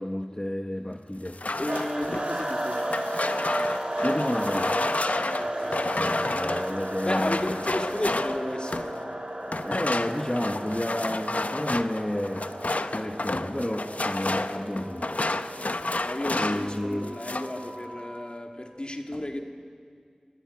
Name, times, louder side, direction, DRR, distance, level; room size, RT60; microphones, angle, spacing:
voice 1, 0.0-1.4 4.0-4.8 6.0-7.7 9.6-15.2 16.4-17.1, left 1 dB, 25° left, 3 dB, 1.1 m, -31 dB
sound 1, 1.3-9.0 9.5-16.8 17.0-17.6, left 2 dB, 70° left, 0.8 m, -31 dB
voice 2, 1.6-2.9 5.3-6.4 7.0-9.2 12.8-13.2 15.6-19.4, left 1 dB, 40° left, 3 dB, 2.3 m, -34 dB
sound 2, 1.7-18.4, right 1 dB, 45° right, 3.1 m, -34 dB
25.5 x 15.0 x 9.6 m, 2.3 s
wide cardioid pair, 40°, 3 cm